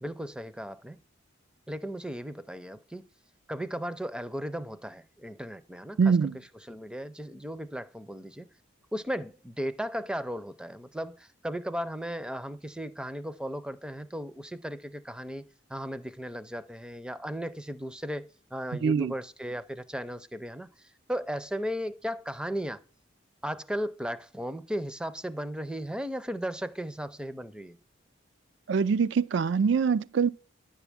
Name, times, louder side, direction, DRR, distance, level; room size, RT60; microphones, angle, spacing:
voice 1, 0.0-1.0 1.7-3.1 3.5-6.2 6.7-8.5 8.9-15.4 15.7-22.8 23.4-27.8, equal, 5° right, 0.5 m, -36 dB
voice 2, 6.0-6.4 18.8-19.1 28.7-30.3, right 5 dB, 65° right, 0.4 m, -24 dB
10.5 x 7.1 x 3.5 m
head